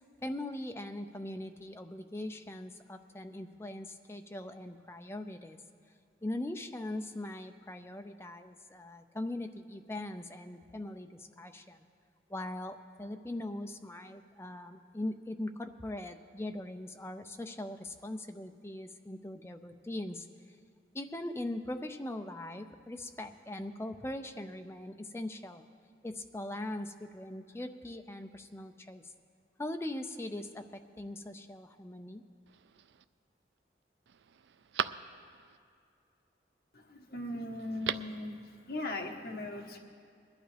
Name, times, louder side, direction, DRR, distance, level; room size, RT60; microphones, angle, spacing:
voice 1, 0.2-5.6 6.2-11.8 12.3-20.3 20.9-25.6 26.0-29.1 29.6-30.7 31.0-32.2, left 1 dB, 15° left, 6 dB, 0.5 m, -40 dB
Telephone, 32.5-33.0 33.6-33.7 34.1-35.6 37.6-38.2 38.5-38.6, right 8 dB, 75° right, 0.4 m, -38 dB
voice 2, 36.7-39.8, left 1 dB, 55° left, 1 dB, 1.3 m, -39 dB
21.0 x 11.5 x 3.4 m, 2.4 s
head